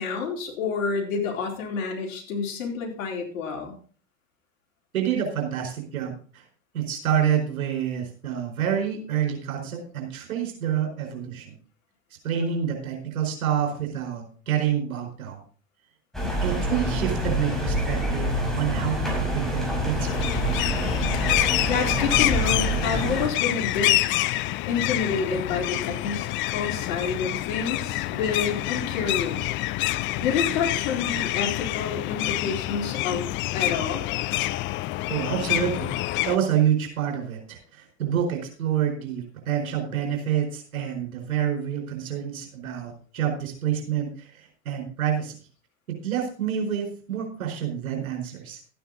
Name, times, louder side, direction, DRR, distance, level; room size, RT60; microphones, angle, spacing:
voice 1, 0.0-3.8 21.1-24.0 24.7-29.5 30.1-33.2 33.5-34.0, left 5 dB, 65° left, 0 dB, 4.1 m, -29 dB
voice 2, 4.9-6.4 6.7-11.5 12.2-15.4 16.4-20.6 35.1-35.9 36.3-45.3 46.0-48.6, right 9 dB, 70° right, 2 dB, 4.7 m, -28 dB
sound 1, 16.1-23.3, equal, ahead, 5.2 m, -26 dB
sound 2, 20.0-36.4, left 16 dB, 30° left, 0.4 m, -27 dB
13.5 x 9.3 x 4.0 m, 0.41 s
hypercardioid pair, 85°, 42 cm